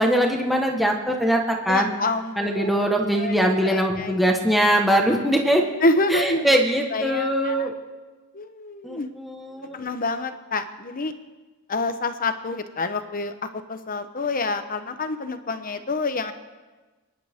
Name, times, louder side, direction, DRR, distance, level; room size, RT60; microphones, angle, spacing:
voice 1, 0.0-1.4 1.6-1.9 2.4-5.6 6.1-7.7 8.8-9.8, equal, ahead, 1 dB, 1.4 m, -21 dB
voice 2, 1.7-3.3 3.6-4.2 5.8-6.6 6.9-7.7 8.3-9.1 9.7-11.1 11.7-13.3 13.7-16.3, left 2 dB, 40° left, 9 dB, 1.0 m, -27 dB
29.0 x 11.0 x 3.6 m, 1.3 s
head